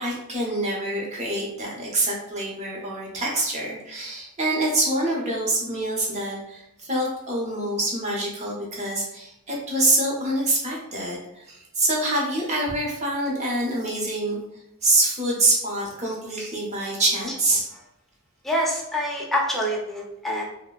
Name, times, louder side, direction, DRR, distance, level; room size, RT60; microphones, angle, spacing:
voice 1, 0.0-14.4 14.8-17.7, right 1 dB, 30° right, -3 dB, 0.8 m, -25 dB
voice 2, 18.4-20.5, equal, ahead, -4 dB, 0.5 m, -26 dB
3.2 x 2.0 x 2.2 m, 0.84 s
head